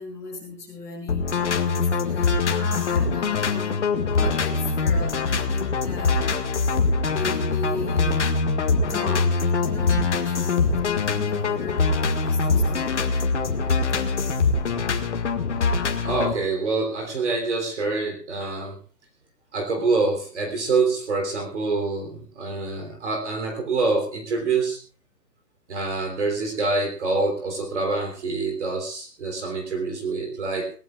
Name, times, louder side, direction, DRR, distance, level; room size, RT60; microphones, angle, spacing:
voice 1, 0.0-3.8 4.1-6.3 7.0-8.4 8.8-9.3 9.6-13.3, left 3 dB, 5° left, -7 dB, 6.1 m, -36 dB
sound 1, 1.1-16.3, left 4 dB, 45° left, 1.9 m, -23 dB
voice 2, 16.0-18.8 19.5-24.8 25.7-30.7, right 3 dB, 45° right, 4 dB, 3.5 m, -26 dB
21.0 x 18.5 x 2.4 m, 0.36 s
hypercardioid pair, 175°, 48 cm